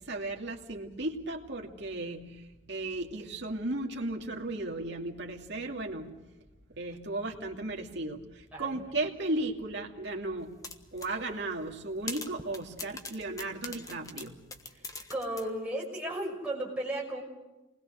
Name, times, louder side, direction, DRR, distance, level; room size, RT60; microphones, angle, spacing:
voice 1, 0.1-6.1 6.7-10.5 10.9-14.4, right 2 dB, 60° right, 2 dB, 2.6 m, -35 dB
voice 2, 8.5-8.8 15.1-17.2, right 1 dB, 5° right, -3 dB, 5.8 m, -34 dB
sound 1, 10.6-11.1 11.5-11.6 12.1-15.5, left 3 dB, 20° left, 1.4 m, -41 dB
28.5 x 20.5 x 6.6 m, 1.1 s
head